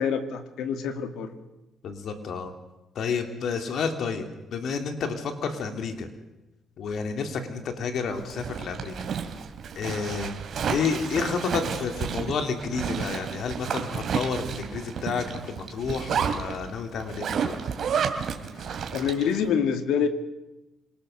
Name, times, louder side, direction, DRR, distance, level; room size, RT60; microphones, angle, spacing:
voice 1, 0.0-1.3 18.6-20.1, left 7 dB, 85° left, 8 dB, 2.1 m, -26 dB
voice 2, 1.8-2.5 2.9-4.2 4.5-6.1 6.8-9.1 9.7-17.5, left 5 dB, 65° left, 6 dB, 3.0 m, -30 dB
Zipper (clothing), 8.2-19.4, right 7 dB, 60° right, 2.8 m, -31 dB
26.5 x 19.5 x 6.8 m, 0.97 s
cardioid pair, 90°, 0 cm